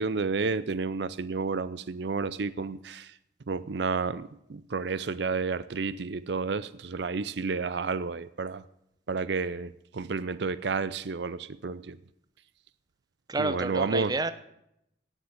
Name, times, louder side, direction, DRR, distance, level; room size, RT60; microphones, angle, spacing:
voice 1, 0.0-3.1 3.5-8.6 9.1-12.0 13.4-14.1, right 4 dB, 65° right, 15 dB, 0.5 m, -31 dB
voice 2, 13.3-14.3, right 3 dB, 20° right, 12 dB, 0.9 m, -29 dB
17.5 x 7.0 x 9.5 m, 0.78 s
head